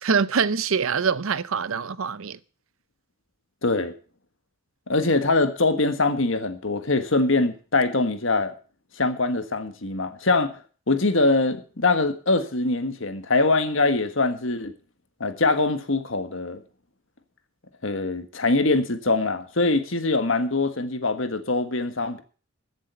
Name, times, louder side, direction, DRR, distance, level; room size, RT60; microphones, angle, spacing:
voice 1, 0.0-2.4, right 6 dB, 70° right, 0.6 m, -24 dB
voice 2, 3.6-3.9 4.9-8.5 9.0-10.6 10.9-14.7 15.2-16.6 17.8-22.2, left 3 dB, 65° left, 1.6 m, -23 dB
14.5 x 7.6 x 6.8 m
head